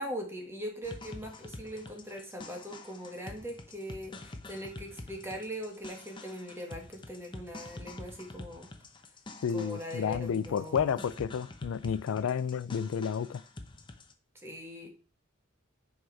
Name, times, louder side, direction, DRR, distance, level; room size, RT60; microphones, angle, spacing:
voice 1, 0.0-8.7 9.5-11.0 14.3-14.9, equal, 10° right, 1.6 m, -41 dB
sound 1, 0.8-14.1, left 2 dB, 25° left, 0.7 m, -47 dB
voice 2, 9.4-13.4, left 7 dB, 85° left, 0.3 m, -31 dB
6.3 x 4.8 x 4.6 m
head